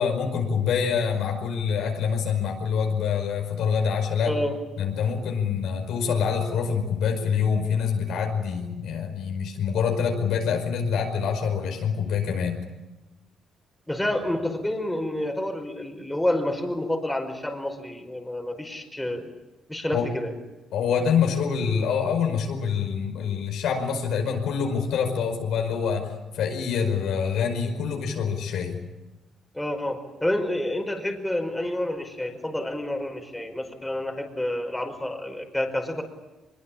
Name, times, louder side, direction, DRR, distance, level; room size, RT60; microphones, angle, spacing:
voice 1, 0.0-4.3 4.8-12.6 19.9-20.1 20.7-28.8, left 6 dB, 80° left, 3 dB, 5.2 m, -26 dB
voice 2, 13.9-19.3 19.7-20.3 29.5-36.0, left 1 dB, 10° left, 3 dB, 5.2 m, -29 dB
23.0 x 22.5 x 8.8 m, 1.1 s
cardioid pair, 90°, 0 cm